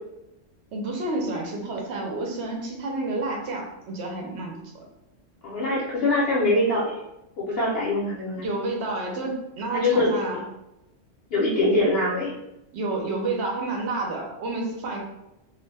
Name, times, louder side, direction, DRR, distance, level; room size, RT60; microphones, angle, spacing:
voice 1, 0.7-4.9 8.4-10.4 12.7-15.0, right 2 dB, 70° right, 0 dB, 0.8 m, -30 dB
voice 2, 5.4-6.9 7.4-8.4 9.7-10.1 11.3-12.3, left 2 dB, 60° left, -7 dB, 0.8 m, -23 dB
2.3 x 2.1 x 3.2 m, 0.91 s
omnidirectional pair, 1.3 m